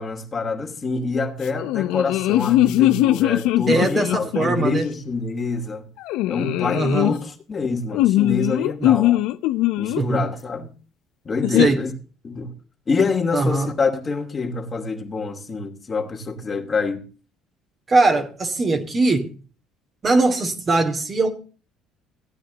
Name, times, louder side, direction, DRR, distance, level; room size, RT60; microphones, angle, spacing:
voice 1, 0.0-5.8 6.3-9.2 9.8-10.7 11.2-11.9 12.2-12.5 12.9-17.0, left 4 dB, 35° left, 2.6 m, -26 dB
sound 1, 1.6-4.6 6.1-7.1 7.9-10.0 11.4-11.7, left 15 dB, 75° left, 0.6 m, -20 dB
voice 2, 3.7-4.9 6.7-7.2 8.8-9.0 10.0-10.3 11.6-11.8 13.3-13.7 17.9-19.3 20.0-21.3, right 3 dB, 35° right, 2.7 m, -21 dB
16.5 x 9.2 x 4.0 m
hypercardioid pair, 70°, 0 cm